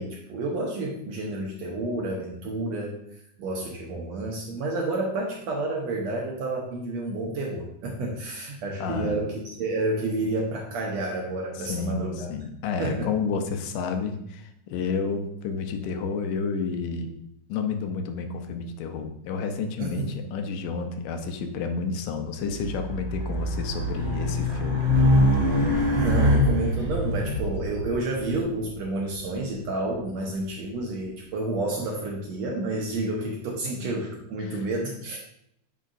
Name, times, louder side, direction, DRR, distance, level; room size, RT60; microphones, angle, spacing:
voice 1, 0.0-3.0 3.4-12.3 12.8-13.1 19.8-20.2 25.9-35.2, right 2 dB, 70° right, 0 dB, 1.7 m, -30 dB
voice 2, 8.8-9.2 11.6-17.1 17.5-20.1 20.3-24.8 34.5-34.6, left 5 dB, 80° left, 6 dB, 2.3 m, -30 dB
sound 1, 22.6-22.9 23.2-32.1, equal, 65° left, 2.8 m, -36 dB
Race car auto racing, 22.6-26.9, left 1 dB, 15° right, 2.6 m, -23 dB
9.1 x 5.6 x 2.5 m, 0.74 s
omnidirectional pair, 3.8 m